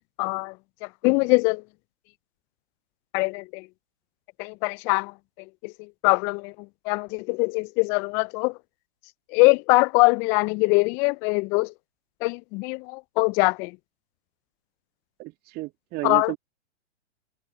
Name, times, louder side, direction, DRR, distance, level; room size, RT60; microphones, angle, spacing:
voice 1, 0.2-0.5 1.0-1.6 3.1-3.7 4.4-5.1 5.6-6.5 6.9-8.6 9.3-11.7 12.2-13.8 16.0-16.3, left 30 dB, 10° left, 0.3 m, -22 dB
voice 2, 15.2-16.4, right 20 dB, 25° right, 2.5 m, -32 dB
figure-of-eight pair, 115°, 35 cm